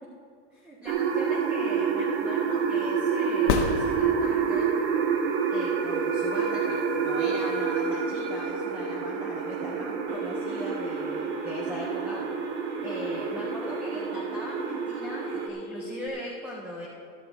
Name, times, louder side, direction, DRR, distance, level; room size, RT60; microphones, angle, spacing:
voice 1, 0.5-4.8 5.5-12.2 12.8-16.9, left 1 dB, 5° right, -4 dB, 0.3 m, -40 dB
sound 1, 0.9-15.5, right 6 dB, 60° right, 1.4 m, -28 dB
sound 2, 3.4-4.6 8.5-8.6, left 7 dB, 60° left, 1.2 m, -28 dB
Telephone, 10.1-16.1, equal, 45° left, 1.5 m, -41 dB
13.0 x 12.5 x 3.8 m, 2.5 s
supercardioid pair, 170°, 38 cm